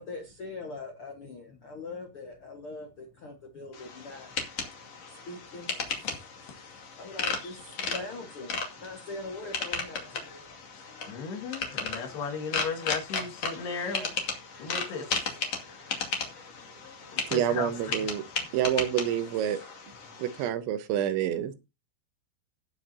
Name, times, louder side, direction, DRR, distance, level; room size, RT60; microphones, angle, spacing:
voice 1, 0.0-4.3 5.1-5.7 7.0-10.2 13.8-14.1, left 3 dB, 80° left, 1.2 m, -41 dB
sound 1, 3.7-20.5, left 5 dB, 40° left, 2.7 m, -35 dB
voice 2, 6.0-7.0 7.4-7.9 10.7-14.1 14.6-16.3 17.1-17.7, left 5 dB, 65° left, 3.8 m, -37 dB
voice 3, 17.2-18.2 18.5-19.6 20.2-21.5, right 10 dB, 85° right, 3.4 m, -28 dB
18.0 x 7.1 x 2.8 m
omnidirectional pair, 5.3 m